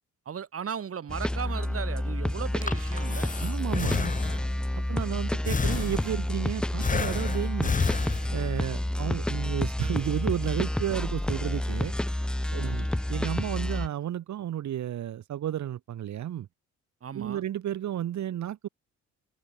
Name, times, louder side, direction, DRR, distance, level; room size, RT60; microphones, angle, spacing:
voice 1, 0.2-3.3 12.6-12.9 17.0-17.4, right 7 dB, 50° right, 3.2 m, -37 dB
sound 1, 1.1-13.9, left 1 dB, 5° left, 0.4 m, -29 dB
Breathing, 2.4-4.7 5.5-6.4 6.8-8.6, left 5 dB, 25° left, 1.4 m, -30 dB
voice 2, 3.4-4.1 4.9-7.8 8.3-11.9 12.5-16.5 17.1-18.7, right 11 dB, 70° right, 2.4 m, -32 dB
cardioid pair, 90°, 30 cm